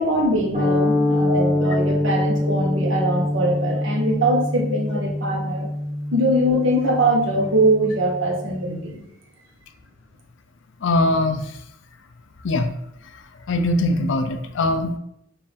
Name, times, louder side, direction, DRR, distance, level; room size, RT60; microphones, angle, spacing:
voice 1, 0.0-5.7 6.1-9.0, right 1 dB, 70° right, 0 dB, 1.0 m, -22 dB
sound 1, 0.5-8.9, left 1 dB, 35° right, 1.2 m, -25 dB
voice 2, 10.8-11.4 12.4-12.7 13.5-15.0, left 2 dB, 65° left, 7 dB, 0.4 m, -21 dB
5.2 x 2.5 x 3.4 m, 0.80 s
head